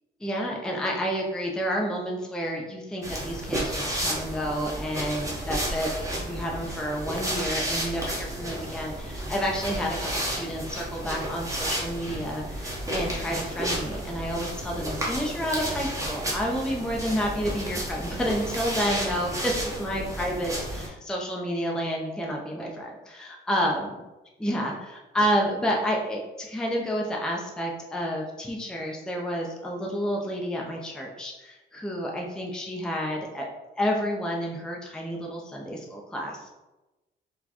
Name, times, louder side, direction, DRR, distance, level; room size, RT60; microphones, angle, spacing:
voice 1, 0.2-23.9 24.4-33.5 33.8-36.5, equal, 5° left, -1 dB, 0.5 m, -30 dB
sound 1, 3.0-20.9, right 1 dB, 15° right, 0.9 m, -32 dB
4.1 x 2.2 x 2.9 m, 1.1 s
cardioid pair, 90°, 20 cm